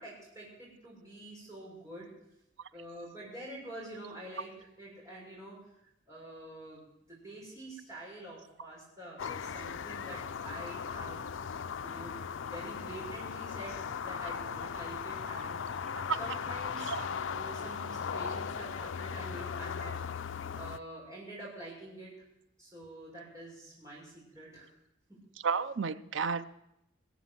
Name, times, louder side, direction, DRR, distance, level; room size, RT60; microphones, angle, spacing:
voice 1, 0.0-2.1 2.7-5.6 6.1-11.2 11.8-15.6 16.2-16.9 17.3-20.0 20.5-22.1 22.6-24.7, right 1 dB, 15° right, 6.6 m, -47 dB
sound 1, 9.2-20.8, left 6 dB, 90° left, 0.5 m, -38 dB
voice 2, 25.4-26.5, right 5 dB, 80° right, 0.6 m, -32 dB
19.5 x 8.3 x 7.6 m
head